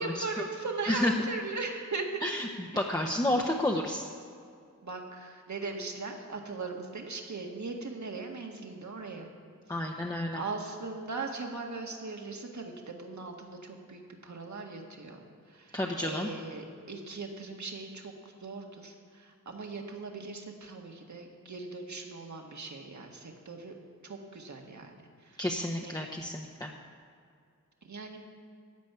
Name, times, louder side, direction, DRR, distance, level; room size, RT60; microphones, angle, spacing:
voice 1, 0.0-2.2 4.8-9.3 9.9-15.2 15.5-23.7 24.0-24.9 25.2-25.4 25.8-26.0 27.8-28.2, right 3 dB, 60° right, 2 dB, 1.9 m, -39 dB
voice 2, 0.9-1.3 2.2-4.0 9.7-10.4 15.7-16.3 25.4-26.7, left 1 dB, 10° left, 0 dB, 1.1 m, -30 dB
15.5 x 5.3 x 9.5 m, 2.3 s
cardioid pair, 60°, 33 cm